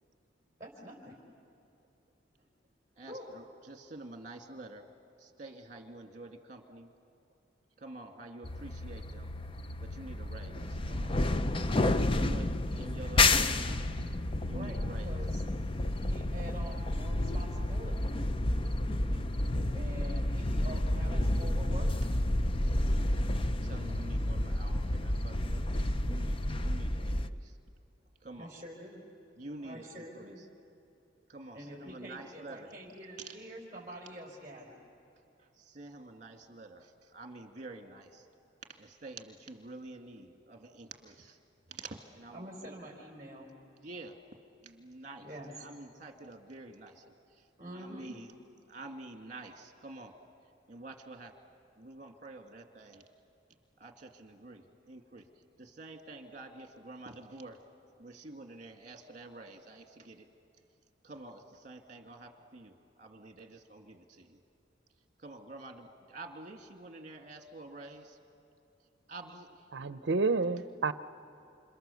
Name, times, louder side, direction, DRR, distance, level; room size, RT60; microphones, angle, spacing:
voice 1, 0.6-1.2 3.1-3.3 11.5-11.9 14.5-15.4 15.8-18.3 19.5-22.2 28.4-29.0 29.6-30.4 31.5-34.7 42.3-43.5 45.2-45.5 47.6-48.1, equal, 15° right, -3 dB, 4.5 m, -46 dB
voice 2, 3.0-4.9 5.2-6.9 7.8-9.3 9.8-11.1 11.8-13.8 14.5-15.2 19.0-19.3 23.6-27.6 28.2-28.5 29.4-30.3 31.3-32.7 33.2-33.4 35.4-38.3 38.7-41.4 41.7-42.8 43.8-44.2 44.5-45.3 45.5-47.0 47.3-48.3 48.7-50.1 50.7-51.3 51.8-53.0 53.8-55.3 55.6-57.6 58.0-60.3 61.0-64.4 65.2-68.2 69.1-69.6, right 2 dB, 40° right, 4 dB, 2.0 m, -48 dB
sound 1, 8.4-27.3, left 1 dB, 30° left, 0.6 m, -30 dB
voice 3, 69.7-70.9, right 3 dB, 70° right, 13 dB, 0.7 m, -29 dB
28.0 x 27.5 x 7.0 m, 2.7 s
head